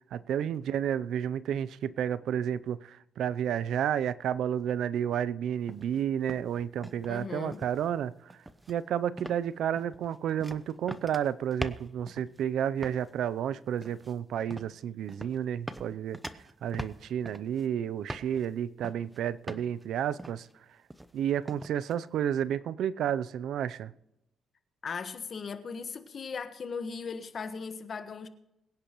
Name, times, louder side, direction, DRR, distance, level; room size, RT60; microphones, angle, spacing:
voice 1, 0.1-8.3 8.7-16.2 16.6-20.5 21.1-23.9, right 9 dB, 75° right, 0.5 m, -31 dB
sound 1, 5.7-6.0 6.3-7.2 7.5-7.9 8.3-8.8 9.2-9.5 9.8-12.4 12.8-13.1 13.8-14.1 14.5-14.7 15.1-15.4 15.7-17.7 18.1-18.5 18.8-19.2 19.5-19.8 20.2-20.5 20.9-21.2 21.5-21.9, right 1 dB, 10° right, 0.8 m, -42 dB
voice 2, 7.1-7.6 24.8-28.3, left 5 dB, 45° left, 1.4 m, -38 dB
23.0 x 10.0 x 3.1 m
cardioid pair, 90°, 0 cm